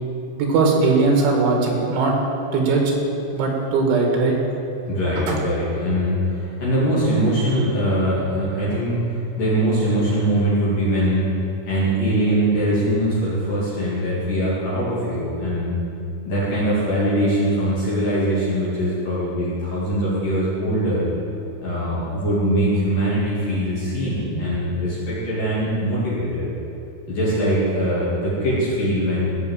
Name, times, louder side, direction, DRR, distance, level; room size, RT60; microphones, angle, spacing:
voice 1, 0.4-2.2 2.5-2.8 3.3-4.4 5.2-5.4, right 3 dB, 70° right, 0 dB, 4.1 m, -19 dB
voice 2, 4.9-11.3 11.7-15.8 16.3-21.1 21.6-26.5 27.1-29.3, right 1 dB, 50° left, -9 dB, 3.8 m, -22 dB
17.0 x 6.1 x 7.5 m, 2.8 s
omnidirectional pair, 5.8 m